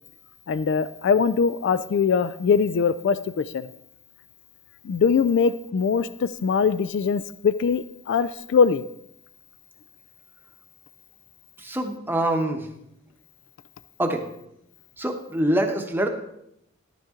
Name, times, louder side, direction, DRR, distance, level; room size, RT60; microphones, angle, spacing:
voice 1, 0.5-3.7 4.8-8.8, left 6 dB, 55° left, 15 dB, 0.3 m, -22 dB
voice 2, 11.6-12.6 14.0-14.2 15.0-16.1, right 1 dB, 10° right, 4 dB, 0.9 m, -24 dB
11.5 x 9.1 x 3.7 m, 0.79 s
head